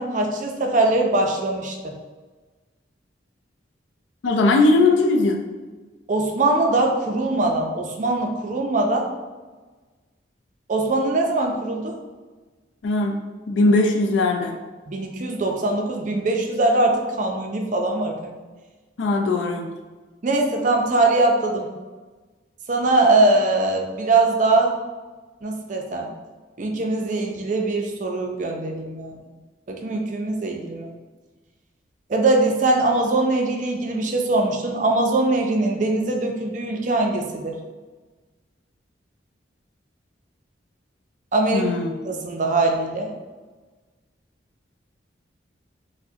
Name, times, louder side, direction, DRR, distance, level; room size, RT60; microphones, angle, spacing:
voice 1, 0.0-1.9 6.1-9.1 10.7-11.9 14.9-18.4 20.2-21.7 22.7-24.8 25.4-26.1 26.6-29.2 29.7-30.9 32.1-37.5 41.3-41.7 42.0-43.1, right 2 dB, 45° right, 2 dB, 0.4 m, -22 dB
voice 2, 4.2-5.4 12.8-14.5 19.0-19.7 41.5-41.9, left 2 dB, 80° left, 2 dB, 0.4 m, -19 dB
4.5 x 2.1 x 2.7 m, 1.3 s
head